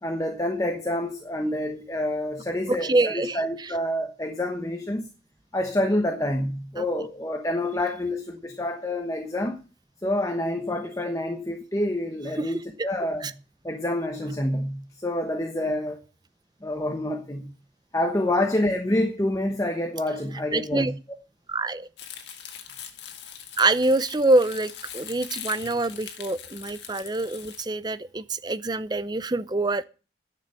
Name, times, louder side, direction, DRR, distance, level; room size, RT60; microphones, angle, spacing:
voice 1, 0.0-5.1 5.5-9.6 10.0-13.3 13.6-16.0 16.6-17.4 17.9-20.9, left 1 dB, 20° left, 1.1 m, -27 dB
voice 2, 2.7-3.7 6.8-6.9 12.4-12.5 13.2-13.3 20.5-20.9 21.5-21.9 23.6-29.8, right 2 dB, 25° right, 0.5 m, -25 dB
Crumpling crinkling, 22.0-27.6, left 9 dB, 70° left, 1.7 m, -41 dB
10.5 x 6.9 x 7.6 m
head